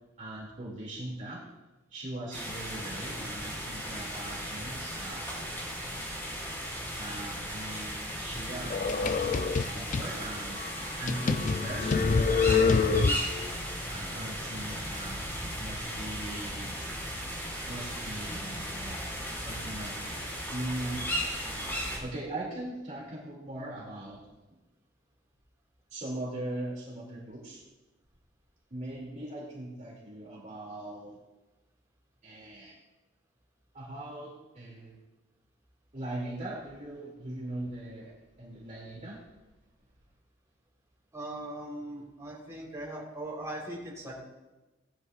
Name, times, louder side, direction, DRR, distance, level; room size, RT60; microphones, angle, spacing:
voice 1, 0.2-1.4 1.9-5.4 7.0-13.1 13.9-16.8 17.7-19.0 19.4-19.9 20.5-21.0 21.8-24.2 25.9-27.6 28.7-31.2 32.2-32.8 33.7-34.9 35.9-38.1 38.4-39.2, right 1 dB, 40° right, -4 dB, 2.5 m, -40 dB
sound 1, 2.3-22.0, equal, 10° left, 4.0 m, -36 dB
sound 2, 8.7-10.1 10.6-10.7 11.1-13.5, left 4 dB, 40° left, 0.4 m, -26 dB
voice 2, 41.1-44.2, right 1 dB, 15° right, -4 dB, 3.5 m, -39 dB
18.5 x 11.5 x 2.4 m, 1.1 s
head